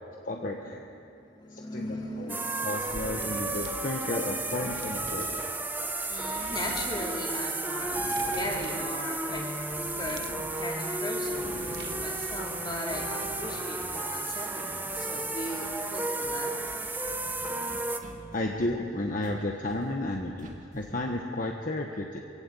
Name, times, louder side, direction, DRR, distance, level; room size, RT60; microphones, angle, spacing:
voice 1, 0.3-0.9 1.5-2.4 2.6-5.5 18.3-22.2, left 1 dB, 45° left, 1 dB, 1.2 m, -33 dB
voice 2, 1.0-3.3 6.1-9.5 10.0-10.3 10.5-16.5, left 1 dB, 25° left, -2 dB, 3.4 m, -38 dB
sound 1, 2.3-18.0, right 2 dB, 10° right, 1.1 m, -33 dB
sound 2, 2.8-12.4, right 2 dB, 60° right, 1.0 m, -45 dB
sound 3, 11.4-21.0, equal, 40° right, 2.2 m, -49 dB
23.5 x 15.5 x 8.5 m, 2.6 s
head